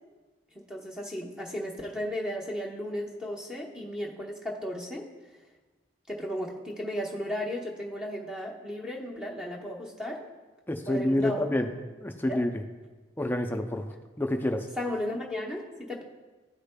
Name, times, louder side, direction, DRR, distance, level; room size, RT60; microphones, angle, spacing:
voice 1, 0.5-5.0 6.1-10.2 10.9-11.5 12.3-12.4 14.8-16.0, equal, 5° right, -1 dB, 0.9 m, -35 dB
voice 2, 10.7-11.7 12.0-12.5 13.2-14.7, left 1 dB, 10° left, 5 dB, 0.4 m, -28 dB
13.5 x 5.0 x 2.2 m, 1.3 s
head